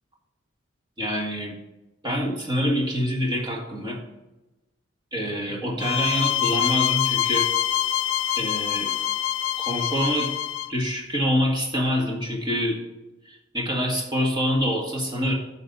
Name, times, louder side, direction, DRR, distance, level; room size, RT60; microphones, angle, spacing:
voice 1, 1.0-1.6 2.0-4.0 5.1-7.5 8.4-8.9 9.6-10.3 10.7-12.8 13.3-15.3, equal, 25° right, -1 dB, 1.9 m, -26 dB
sound 1, 5.8-10.7, left 12 dB, 75° left, 0.5 m, -25 dB
10.0 x 6.4 x 4.1 m, 0.99 s
head